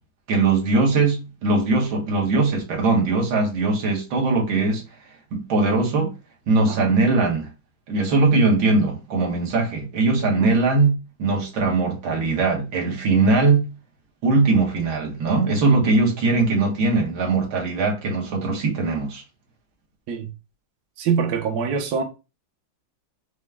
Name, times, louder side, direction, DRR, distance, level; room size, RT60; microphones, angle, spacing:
voice 1, 0.3-4.8 5.3-6.1 6.5-7.5 7.9-10.9 11.2-13.6 14.2-19.2, right 3 dB, 75° right, 2.0 m, -20 dB
voice 2, 21.0-22.0, right 6 dB, 60° right, 1.2 m, -24 dB
5.0 x 2.2 x 3.5 m
omnidirectional pair, 2.2 m